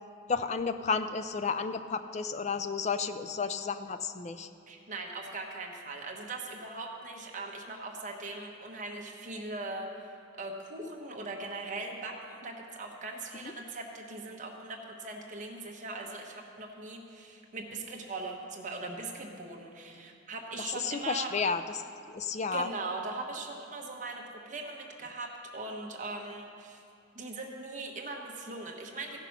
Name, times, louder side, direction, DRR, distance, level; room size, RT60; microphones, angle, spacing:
voice 1, 0.3-4.5 13.4-13.5 20.7-21.8 22.1-22.7, left 5 dB, 35° left, 10 dB, 0.4 m, -32 dB
voice 2, 4.7-21.3 22.5-26.8 27.1-29.2, right 2 dB, 35° right, 1 dB, 1.1 m, -40 dB
15.5 x 5.8 x 5.9 m, 2.5 s
head